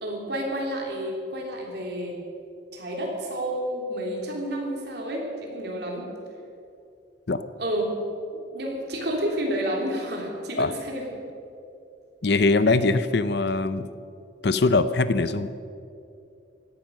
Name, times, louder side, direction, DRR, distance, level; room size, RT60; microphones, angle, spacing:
voice 1, 0.0-2.2 2.7-6.1 7.6-7.9 8.4-11.1, right 1 dB, 55° right, -1 dB, 3.4 m, -30 dB
voice 2, 12.2-13.9 14.4-15.5, left 3 dB, 55° left, 13 dB, 0.7 m, -22 dB
16.5 x 12.0 x 6.5 m, 2.5 s
head